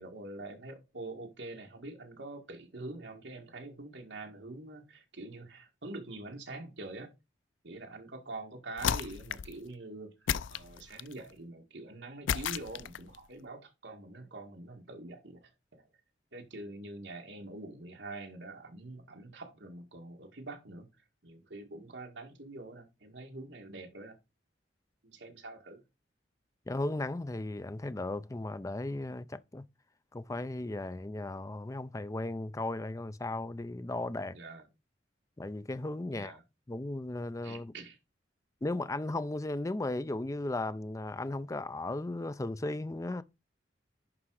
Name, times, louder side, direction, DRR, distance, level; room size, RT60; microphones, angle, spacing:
voice 1, 0.0-7.1 7.6-15.9 16.3-20.9 21.2-24.2 25.0-25.8 34.3-34.7 36.1-36.4 37.4-38.0, right 2 dB, 70° right, 1.9 m, -45 dB
sound 1, 8.8-9.6 10.3-11.2 12.3-13.2, left 8 dB, 90° left, 0.4 m, -33 dB
voice 2, 26.7-29.7 30.1-34.4 35.4-36.4 36.7-37.7 38.6-43.2, left 2 dB, 15° left, 0.4 m, -36 dB
11.0 x 3.7 x 4.8 m
head